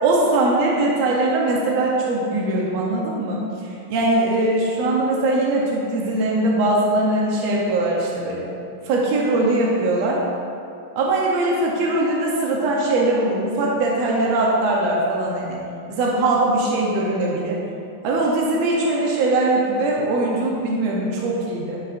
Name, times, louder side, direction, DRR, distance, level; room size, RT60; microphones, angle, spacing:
voice 1, 0.0-8.5 8.8-10.2 10.9-15.6 15.9-17.6 18.0-21.8, right 2 dB, 70° right, -3 dB, 1.6 m, -21 dB
11.0 x 7.5 x 2.6 m, 2.6 s
omnidirectional pair, 4.1 m